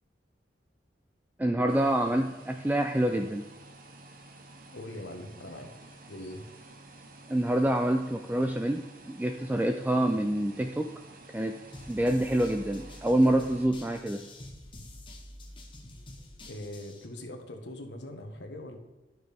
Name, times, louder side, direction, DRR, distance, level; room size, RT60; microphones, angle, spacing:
voice 1, 1.4-3.5 7.3-10.9 11.3-11.6 11.9-14.2, right 1 dB, 10° right, 5 dB, 0.3 m, -27 dB
sound 1, 1.7-13.7, right 2 dB, 50° right, 0.9 m, -51 dB
voice 2, 4.7-5.7 6.1-6.4 16.5-18.8, left 1 dB, 75° left, 4 dB, 1.2 m, -41 dB
sound 2, 11.7-17.1, left 1 dB, 30° left, 1.0 m, -47 dB
11.5 x 6.2 x 3.4 m, 1.1 s
head